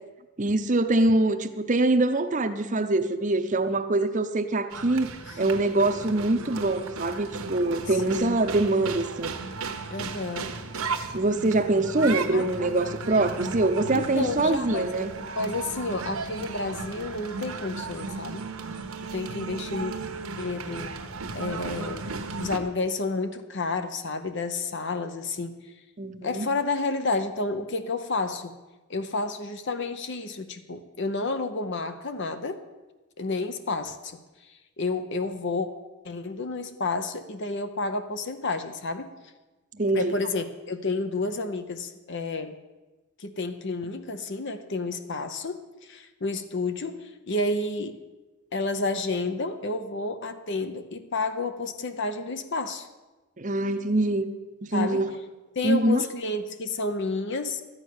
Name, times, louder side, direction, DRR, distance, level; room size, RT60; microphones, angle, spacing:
voice 1, 0.4-5.1 5.4-9.3 11.1-15.2 26.0-26.4 39.7-40.2 53.4-54.3 54.6-55.1 55.6-56.0, right 2 dB, 35° right, 0.7 m, -24 dB
sound 1, 4.7-22.6, right 4 dB, 75° right, 1.2 m, -35 dB
voice 2, 8.1-8.4 9.9-10.6 12.3-12.9 13.9-15.1 15.3-18.4 19.1-19.9 20.4-21.0 21.3-22.1 22.4-25.7 26.2-28.5 28.9-32.6 33.2-35.7 36.0-39.1 39.9-42.6 43.2-48.0 48.5-52.9 54.7-55.1 55.5-57.6, left 3 dB, 50° left, 0.7 m, -30 dB
13.0 x 8.8 x 6.5 m
head